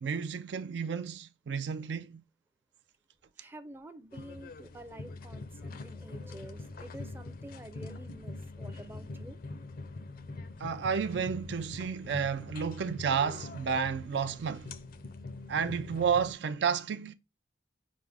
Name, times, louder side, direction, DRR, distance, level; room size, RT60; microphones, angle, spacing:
voice 1, 0.0-2.2 10.6-14.7 15.5-17.1, right 6 dB, 70° right, 0.4 m, -31 dB
voice 2, 3.4-9.4, right 1 dB, 15° right, 0.5 m, -49 dB
sound 1, 4.1-16.3, left 3 dB, 55° left, 0.5 m, -43 dB
5.9 x 2.1 x 3.3 m
head